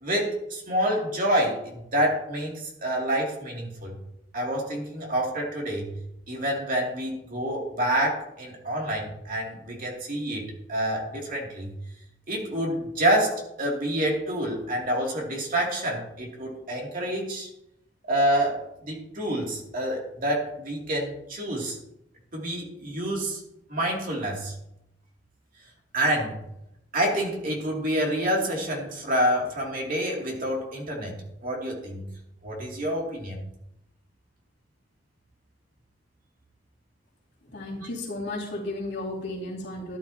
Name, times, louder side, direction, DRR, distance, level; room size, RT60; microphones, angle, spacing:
voice 1, 0.0-4.0 4.3-6.0 6.3-11.7 12.3-17.5 18.1-21.8 22.3-23.4 23.7-24.5 25.9-26.4 26.9-31.2 31.4-32.0 32.4-33.4 37.7-37.9, right 1 dB, 50° right, -1 dB, 2.7 m, -27 dB
voice 2, 37.5-40.0, left 2 dB, 65° left, -4 dB, 3.0 m, -34 dB
13.0 x 11.0 x 2.8 m, 0.83 s
head